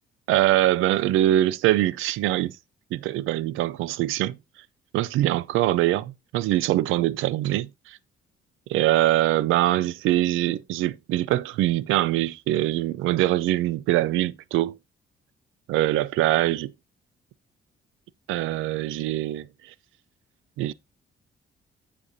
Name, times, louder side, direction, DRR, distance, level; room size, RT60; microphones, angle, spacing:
voice 1, 0.3-2.6 2.9-4.4 4.9-8.0 8.7-14.8 15.7-16.7 18.3-19.7 20.6-20.7, right 14 dB, 90° right, 0.5 m, -23 dB
9.9 x 6.9 x 2.7 m
cardioid pair, 90°, 20 cm